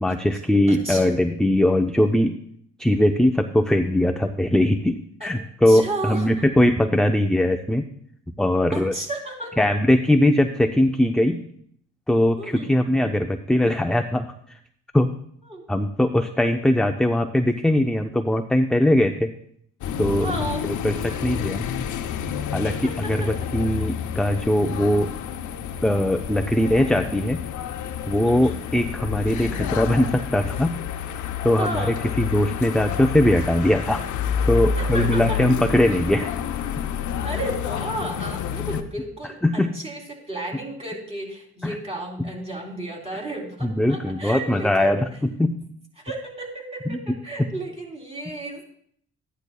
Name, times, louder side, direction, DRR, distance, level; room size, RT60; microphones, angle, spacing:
voice 1, 0.0-2.3 2.8-5.0 5.2-7.9 8.4-9.0 9.6-11.4 12.1-14.3 14.9-15.1 15.7-19.3 20.0-21.7 22.5-22.7 23.0-25.1 25.8-27.4 28.1-30.8 31.4-31.9 32.2-34.0 34.5-36.3 39.4-39.7 41.6-41.8 42.2-42.3 43.6-45.0 45.4-45.6 46.9-47.0, left 1 dB, ahead, 6 dB, 0.4 m, -20 dB
voice 2, 0.7-1.2 5.2-5.3 5.7-6.3 8.7-9.7 12.4-12.7 15.4-15.6 20.2-20.8 22.6-23.3 28.2-28.6 31.6-32.0 34.7-35.4 37.2-45.0 46.0-47.0 47.2-48.6, right 1 dB, 20° right, -1 dB, 3.4 m, -33 dB
sound 1, 19.8-38.8, left 7 dB, 75° left, 0.8 m, -29 dB
13.5 x 9.7 x 2.3 m, 0.65 s
cardioid pair, 90°, 30 cm